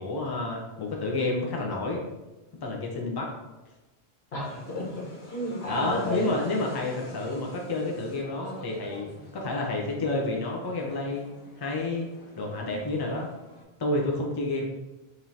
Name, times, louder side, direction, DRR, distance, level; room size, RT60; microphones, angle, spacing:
voice 1, 0.0-2.1 2.6-3.3 5.7-9.1 9.3-11.3 11.6-12.1 12.4-13.3 13.8-14.7, left 2 dB, 30° left, -1 dB, 0.6 m, -30 dB
voice 2, 4.3-6.4, left 1 dB, 75° left, -5 dB, 1.4 m, -31 dB
sound 1, 4.4-13.6, left 1 dB, 50° left, 1.2 m, -48 dB
4.9 x 2.7 x 2.8 m, 1.1 s
omnidirectional pair, 1.1 m